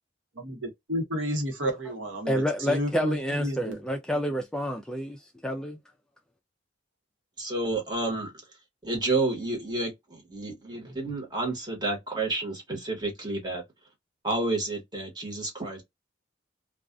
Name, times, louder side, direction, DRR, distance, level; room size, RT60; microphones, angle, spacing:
voice 1, 0.4-3.9, equal, 85° right, 1.0 m, -31 dB
voice 2, 2.3-5.8, equal, 5° left, 0.3 m, -29 dB
voice 3, 7.4-8.3 8.8-13.6 14.2-15.8, right 2 dB, 20° right, 1.2 m, -30 dB
2.4 x 2.3 x 2.4 m
head